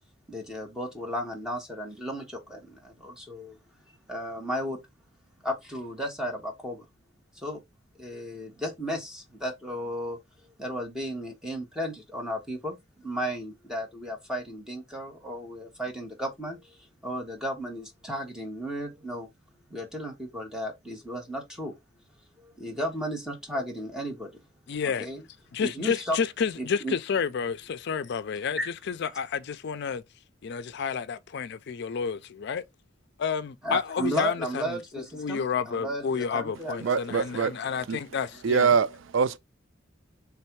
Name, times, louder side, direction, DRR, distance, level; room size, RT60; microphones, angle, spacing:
voice 1, 0.3-3.6 4.1-4.8 5.4-6.8 7.3-7.6 8.0-10.2 10.6-16.8 17.0-19.3 19.7-21.8 22.4-24.3 24.8-25.2 25.6-26.2 26.6-26.9 28.6-28.7 33.6-37.2 38.6-38.7, equal, 5° right, 1.3 m, -34 dB
voice 2, 24.7-25.1 25.5-30.0 30.4-32.6 33.2-34.8 35.1-38.7, left 6 dB, 60° left, 0.4 m, -30 dB
voice 3, 36.8-38.0 38.4-39.4, right 6 dB, 75° right, 0.4 m, -25 dB
3.5 x 3.3 x 4.5 m
head